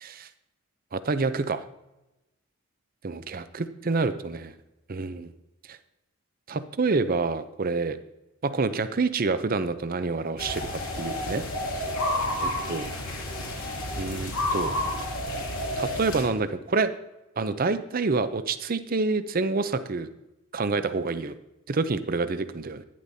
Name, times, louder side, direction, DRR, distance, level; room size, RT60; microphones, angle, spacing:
voice 1, 0.9-1.6 3.0-4.5 4.9-5.3 5.7-5.8 6.5-8.0 8.4-10.7 11.0-11.4 12.4-12.9 14.0-14.7 15.8-16.9 17.4-20.1 20.5-21.3 21.7-22.8, right 3 dB, 40° right, 11 dB, 0.5 m, -27 dB
sound 1, 10.4-16.2, left 1 dB, 70° left, 2.6 m, -30 dB
11.5 x 10.5 x 2.7 m, 0.96 s
head